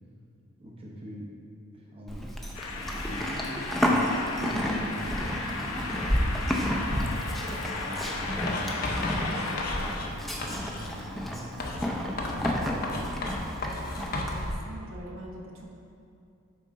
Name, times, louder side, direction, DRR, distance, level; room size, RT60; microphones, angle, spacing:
voice 1, 0.6-1.3 1.7-2.3 2.7-3.6 4.4-6.7 7.2-11.6 12.1-13.1, equal, 25° right, -3 dB, 0.8 m, -43 dB
Livestock farm animals working animals, 2.1-14.5, equal, ahead, 0.5 m, -31 dB
sound 1, 2.5-9.9, left 3 dB, 85° left, 0.7 m, -35 dB
Writing, 8.5-10.1 10.4-11.0 11.6-14.4, left 2 dB, 45° left, 0.6 m, -34 dB
voice 2, 14.1-15.7, right 1 dB, 65° right, -1 dB, 0.8 m, -43 dB
9.3 x 4.1 x 3.7 m, 2.6 s
head